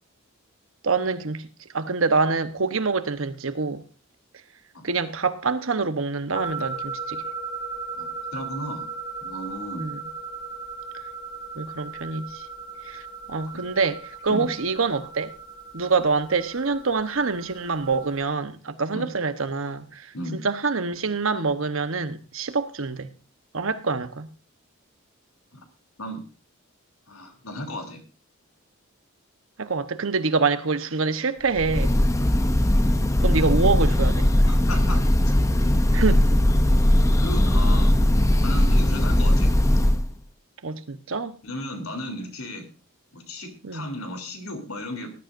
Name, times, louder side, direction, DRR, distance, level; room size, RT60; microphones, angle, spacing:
voice 1, 0.8-1.5 1.7-3.8 4.8-7.2 9.7-10.0 11.6-12.4 12.9-13.0 13.3-15.3 15.7-20.1 20.4-23.1 23.5-24.3 29.6-32.0 33.2-34.3 35.9-36.4 40.6-41.4 43.6-43.9, right 4 dB, 70° right, 1.0 m, -26 dB
sound 1, 6.3-18.2, right 4 dB, 20° right, 2.2 m, -37 dB
voice 2, 8.0-8.9 9.2-9.9 14.3-14.5 18.9-19.1 20.1-20.4 26.0-26.2 27.1-28.0 34.5-35.1 35.6-35.7 37.2-38.0 38.4-39.5 41.4-42.7 43.1-45.1, left 1 dB, 85° left, 3.2 m, -35 dB
Breathing / Bird, 31.6-40.1, left 1 dB, 15° left, 0.6 m, -19 dB
19.5 x 12.0 x 2.6 m
head